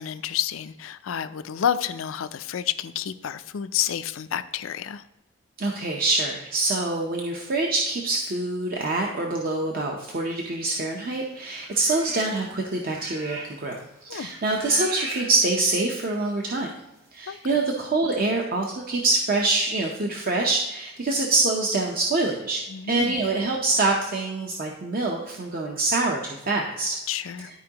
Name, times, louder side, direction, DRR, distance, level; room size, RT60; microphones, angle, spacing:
voice 1, 0.0-5.0 14.1-14.3 17.3-17.5 22.7-23.2 27.1-27.5, left 9 dB, 75° left, 12 dB, 0.4 m, -29 dB
voice 2, 5.6-16.7 17.1-27.0, right 2 dB, 45° right, 0 dB, 0.7 m, -25 dB
sound 1, 11.3-12.4 12.6-13.7 14.0-15.3 15.9-16.0, right 2 dB, 75° right, 2.8 m, -39 dB
12.0 x 4.7 x 2.9 m, 0.95 s
head